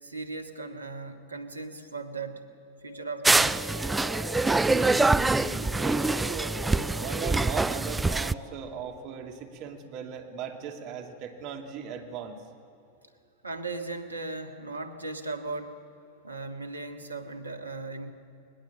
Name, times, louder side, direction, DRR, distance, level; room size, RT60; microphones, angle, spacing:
voice 1, 0.0-2.4 2.8-3.6 13.4-15.8 16.2-18.1, right 3 dB, 80° right, 6 dB, 1.7 m, -37 dB
sound 1, 2.7-7.6, left 1 dB, 25° left, 7.0 m, -44 dB
sound 2, 3.2-8.3, right 3 dB, 10° right, 0.4 m, -25 dB
voice 2, 4.4-6.6 7.0-12.4, right 7 dB, 40° right, 4 dB, 2.5 m, -38 dB
21.0 x 19.5 x 7.4 m, 2.6 s
figure-of-eight pair, 90°, 0 cm